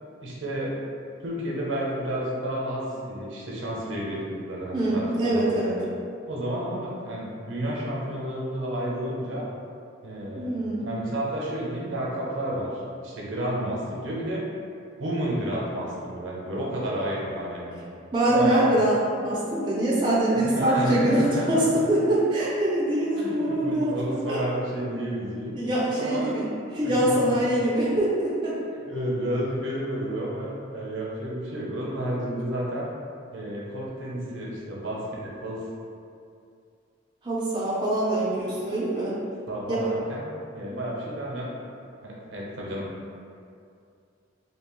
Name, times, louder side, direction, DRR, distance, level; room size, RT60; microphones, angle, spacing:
voice 1, 0.2-0.8 1.2-5.9 6.3-9.5 10.0-12.7 13.0-14.4 15.0-17.8 18.3-18.7 20.4-21.8 23.2-25.6 26.0-26.4 26.8-27.3 28.9-32.9 33.3-35.6 39.5-40.2 40.5-41.5 42.0-42.9, right 1 dB, 80° right, -4 dB, 0.6 m, -31 dB
voice 2, 4.7-5.7 10.3-11.0 18.1-24.4 25.5-26.4 26.7-28.6 37.2-39.2 39.7-39.8, right 1 dB, 25° right, -8 dB, 0.4 m, -24 dB
2.8 x 2.2 x 3.0 m, 2.4 s
head